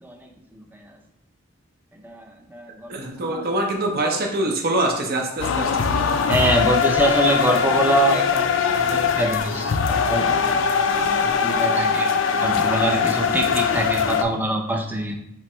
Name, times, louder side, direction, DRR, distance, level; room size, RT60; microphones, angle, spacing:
voice 1, 0.0-0.9 2.0-3.4 6.3-10.9 11.2-12.1 12.4-15.2, right 2 dB, 10° right, 3 dB, 0.5 m, -25 dB
voice 2, 2.9-6.2 8.5-9.2 9.5-9.6 12.2-13.1, right 1 dB, 50° right, 1 dB, 0.6 m, -26 dB
sound 1, 5.4-14.2, left 6 dB, 65° left, 0.4 m, -21 dB
3.6 x 3.1 x 4.2 m, 0.78 s
head